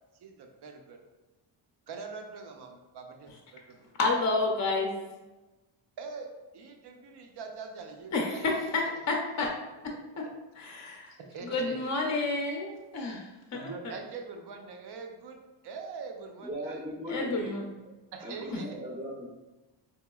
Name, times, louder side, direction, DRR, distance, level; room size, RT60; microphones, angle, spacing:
voice 1, 0.2-1.0 1.9-3.8 6.0-6.3 6.5-9.0 11.3-11.8 13.5-15.4 15.6-16.8 18.1-18.8, right 4 dB, 55° right, 3 dB, 0.6 m, -43 dB
voice 2, 4.0-4.9 8.1-9.5 10.6-11.1 11.4-13.2 13.5-13.9 17.1-17.6 18.5-18.6, left 3 dB, 35° left, 0 dB, 0.5 m, -30 dB
voice 3, 16.4-17.7 18.2-19.3, equal, 15° right, -3 dB, 0.6 m, -38 dB
3.9 x 2.9 x 2.3 m, 1.1 s
cardioid pair, 105°, 49 cm